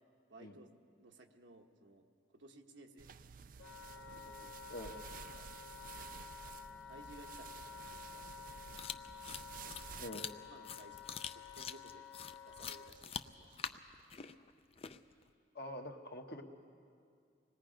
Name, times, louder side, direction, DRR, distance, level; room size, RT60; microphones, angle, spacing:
voice 1, 0.3-0.7 1.0-2.0 2.3-3.1 4.1-4.6 5.3-5.4 6.6-8.6 10.5-11.0 11.3-12.1 12.4-13.8, right 2 dB, 80° right, 3 dB, 1.3 m, -58 dB
sound 1, 3.0-10.1, right 7 dB, 45° right, 0.4 m, -52 dB
Wind instrument woodwind instrument, 3.6-12.9, left 7 dB, 85° left, 1.2 m, -52 dB
sound 2, 8.7-15.2, left 7 dB, 30° left, 0.5 m, -46 dB
voice 2, 15.5-16.4, left 1 dB, 55° left, 4 dB, 1.2 m, -45 dB
25.5 x 20.0 x 5.1 m, 2.3 s
head